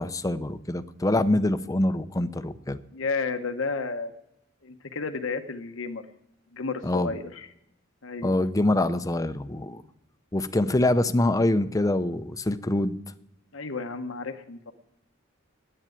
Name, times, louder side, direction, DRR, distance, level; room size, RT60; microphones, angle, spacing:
voice 1, 0.0-2.8 6.8-7.1 8.2-9.8 10.3-13.0, left 1 dB, 15° left, 11 dB, 0.6 m, -25 dB
voice 2, 2.9-4.1 4.6-6.0 6.5-7.5 8.0-8.3 13.5-14.7, left 4 dB, 75° left, 7 dB, 1.0 m, -32 dB
10.0 x 8.8 x 9.1 m, 0.81 s
head